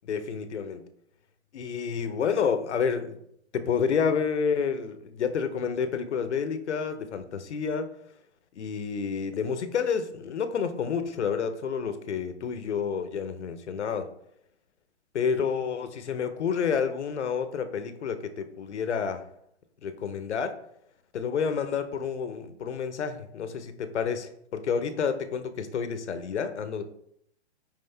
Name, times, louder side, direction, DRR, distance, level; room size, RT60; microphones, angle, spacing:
voice 1, 0.1-0.8 1.5-3.2 3.5-7.9 8.6-14.1 15.1-19.2 19.8-20.5 21.1-26.8, left 6 dB, 80° left, 10 dB, 0.8 m, -29 dB
5.7 x 5.0 x 3.3 m, 0.73 s
hypercardioid pair, 140°, 34 cm